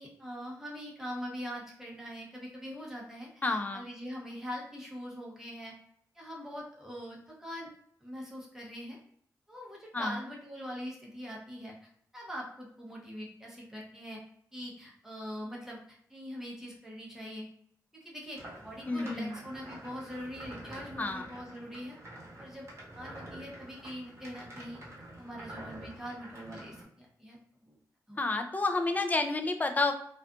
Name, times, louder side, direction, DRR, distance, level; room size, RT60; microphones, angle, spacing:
voice 1, 0.0-5.7 6.1-7.7 8.0-9.0 9.5-11.7 12.1-14.2 14.5-17.4 17.9-22.0 22.4-22.6 22.9-24.8 25.2-27.4 27.6-27.8 28.1-28.2, equal, 5° right, -4 dB, 0.8 m, -42 dB
voice 2, 3.4-3.8 9.9-10.2 18.9-19.3 21.0-21.3 28.2-29.9, left 3 dB, 25° left, 6 dB, 0.4 m, -30 dB
sound 1, 18.4-26.8, right 1 dB, 40° right, 1.0 m, -48 dB
2.4 x 2.4 x 2.3 m, 0.65 s
cardioid pair, 75°, 7 cm